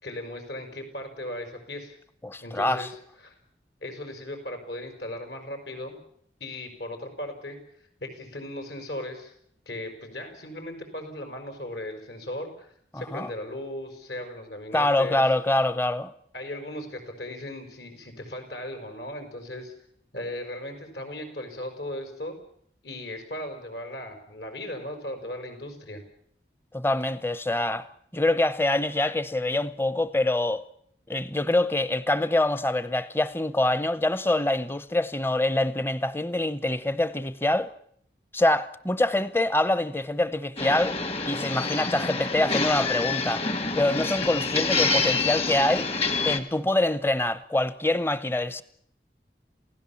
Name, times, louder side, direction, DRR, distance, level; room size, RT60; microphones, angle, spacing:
voice 1, 0.0-2.0 2.4-3.0 3.2-3.3 3.8-6.0 6.4-7.6 8.0-9.3 9.7-15.2 16.3-19.7 20.1-22.4 22.8-26.0, left 1 dB, 70° left, 5.3 m, -37 dB
voice 2, 2.2-2.9 12.9-13.3 14.7-16.1 26.7-27.9 28.1-30.6 31.1-37.7 38.3-41.0 41.3-43.5 43.8-45.9 46.3-48.6, left 1 dB, 15° left, 0.8 m, -25 dB
sound 1, 40.6-46.4, left 3 dB, 35° left, 1.5 m, -27 dB
28.0 x 17.0 x 7.2 m
head